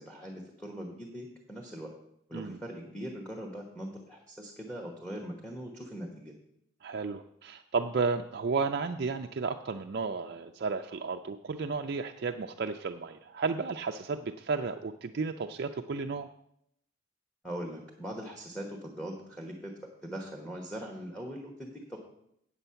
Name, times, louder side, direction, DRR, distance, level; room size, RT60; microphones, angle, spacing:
voice 1, 0.0-1.9 2.3-6.3 17.4-19.7 20.0-22.0, equal, 5° left, 1 dB, 1.0 m, -41 dB
voice 2, 6.8-16.3, right 4 dB, 50° right, 5 dB, 0.4 m, -33 dB
8.3 x 8.0 x 5.6 m, 0.74 s
head